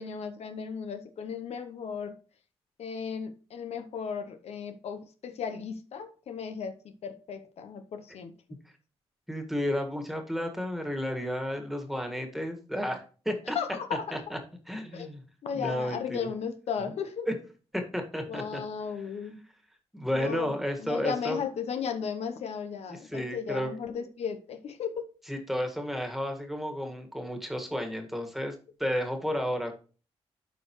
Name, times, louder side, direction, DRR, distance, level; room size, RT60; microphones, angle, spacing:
voice 1, 0.0-2.1 2.8-8.3 13.5-14.1 14.9-15.1 15.4-17.3 18.3-19.4 20.1-20.5 20.8-25.1, left 6 dB, 70° left, 8 dB, 0.8 m, -35 dB
voice 2, 9.3-13.6 14.1-14.4 14.7-15.2 15.5-16.3 17.3-17.4 17.7-18.6 19.0-19.1 19.9-21.4 22.9-23.7 25.3-28.5 28.8-29.7, equal, ahead, 5 dB, 1.7 m, -32 dB
12.0 x 4.6 x 3.1 m, 0.38 s
cardioid pair, 80°, 11 cm